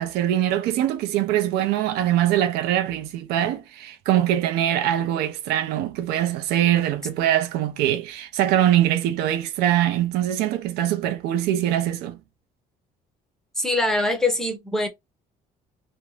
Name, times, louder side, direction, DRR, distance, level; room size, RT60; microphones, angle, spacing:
voice 1, 0.0-12.2, right 12 dB, 85° right, 0.5 m, -23 dB
voice 2, 13.6-14.9, left 2 dB, 5° left, 0.5 m, -23 dB
2.4 x 2.1 x 3.0 m
cardioid pair, 165°, 16 cm